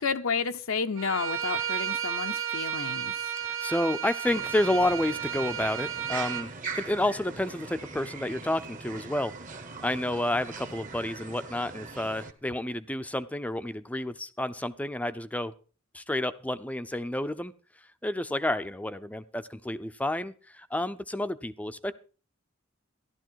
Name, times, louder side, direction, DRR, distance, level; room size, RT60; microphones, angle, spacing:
voice 1, 0.0-3.2, left 5 dB, 75° left, 0.8 m, -31 dB
Bowed string instrument, 1.0-6.5, right 8 dB, 75° right, 1.1 m, -33 dB
voice 2, 3.4-15.5 15.9-17.5 18.0-21.9, left 1 dB, 5° left, 0.6 m, -30 dB
sound 1, 4.3-12.3, right 4 dB, 40° right, 1.2 m, -42 dB
14.0 x 12.0 x 4.6 m
head